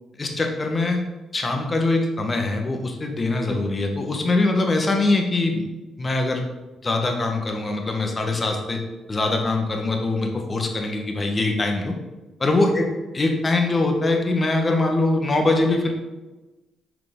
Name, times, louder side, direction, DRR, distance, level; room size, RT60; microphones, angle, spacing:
voice 1, 0.2-1.0 1.3-5.7 6.0-6.4 6.8-8.8 9.1-11.9 12.4-12.9 13.1-15.9, left 2 dB, 30° left, 3 dB, 1.5 m, -22 dB
8.0 x 4.9 x 3.8 m, 1.1 s
supercardioid pair, 70°, 0 cm